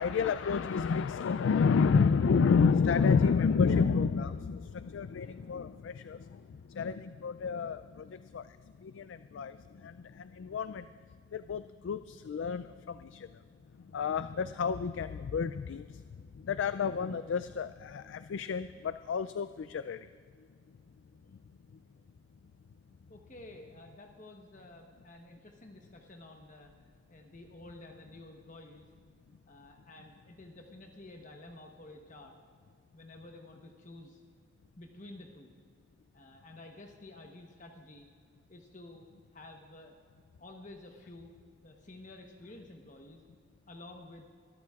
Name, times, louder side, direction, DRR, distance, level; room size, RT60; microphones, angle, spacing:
voice 1, 0.0-10.9 11.3-13.4 13.8-16.0 16.3-20.1, left 5 dB, 75° left, 13 dB, 0.3 m, -30 dB
voice 2, 23.1-28.9 29.5-32.3 32.9-34.2 34.8-35.5 36.1-38.1 38.5-39.0 39.3-40.0 40.4-41.3 41.6-43.2 43.7-44.2, left 2 dB, 40° left, 3 dB, 1.0 m, -51 dB
23.5 x 13.5 x 2.4 m, 2.1 s
head